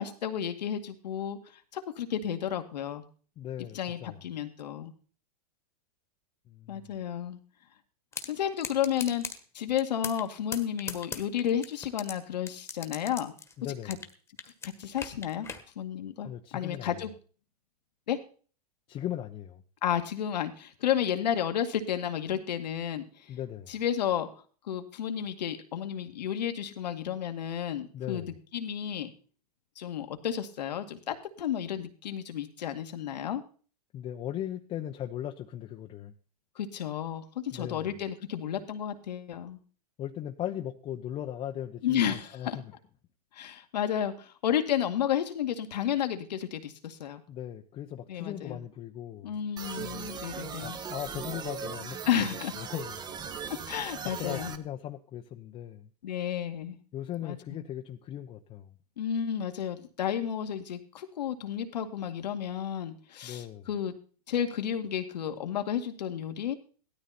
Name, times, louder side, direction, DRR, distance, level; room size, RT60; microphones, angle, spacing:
voice 1, 0.0-1.4 1.7-3.0 3.7-4.9 6.7-7.4 8.3-9.2 9.5-13.3 13.9-14.0 14.6-15.5 15.8-17.1 18.1-18.2 19.8-23.3 23.7-24.3 24.7-29.1 29.8-33.4 36.6-39.6 41.8-42.6 43.3-47.2 48.1-48.6 49.2-50.8 52.1-52.5 53.5-54.5 56.0-56.8 57.2-57.4 59.0-63.9 64.3-66.5, left 9 dB, 85° left, 7 dB, 2.1 m, -32 dB
voice 2, 3.4-4.2 6.5-7.0 13.6-14.0 16.2-16.9 18.9-19.6 23.3-23.8 27.9-28.4 33.9-36.1 37.5-37.9 40.0-42.7 47.3-49.4 50.6-53.0 54.0-55.9 56.9-58.7 63.2-63.7, left 11 dB, 25° left, 3 dB, 0.9 m, -38 dB
sound 1, 8.1-8.3 8.6-9.4 9.8-10.3 10.5-12.1 12.5-14.1 14.4-15.6, left 5 dB, 10° left, 1.5 m, -37 dB
sound 2, 49.6-54.6, right 6 dB, 20° right, 1.1 m, -39 dB
16.5 x 13.0 x 4.3 m, 0.42 s
hypercardioid pair, 140°, 21 cm